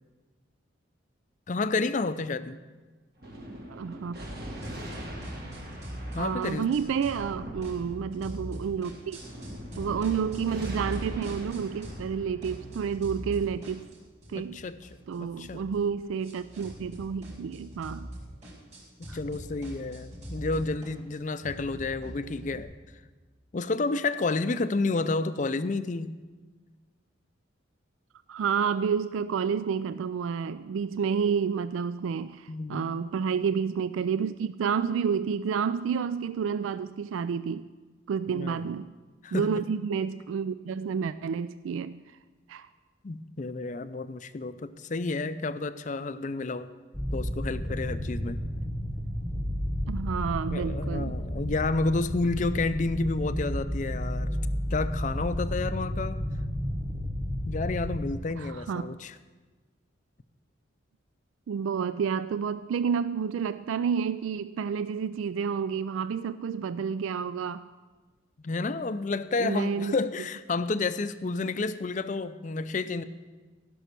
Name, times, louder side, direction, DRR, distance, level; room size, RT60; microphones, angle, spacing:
voice 1, 1.5-2.6 6.1-6.7 14.3-14.8 15.2-15.6 19.0-22.7 23.5-26.2 32.5-33.0 38.3-38.6 39.2-39.6 43.0-46.7 47.1-48.4 50.5-54.3 54.7-56.2 57.4-59.2 68.4-73.0, left 3 dB, 40° left, 13 dB, 0.4 m, -30 dB
Thunder, 3.2-14.1, right 1 dB, 50° right, 1.8 m, -43 dB
voice 2, 3.7-4.2 6.2-9.2 9.8-13.9 14.3-14.6 15.1-18.1 19.1-19.2 28.3-37.7 38.1-38.9 39.3-42.0 42.5-42.7 49.9-51.2 58.4-58.9 61.5-67.7 69.4-70.0, right 6 dB, 85° right, 14 dB, 0.3 m, -30 dB
sound 1, 4.6-7.3 7.6-12.1 12.4-22.6, equal, 35° right, 3.8 m, -42 dB
sound 2, 46.9-58.1, equal, 5° left, 0.9 m, -32 dB
15.5 x 6.2 x 6.8 m, 1.3 s
head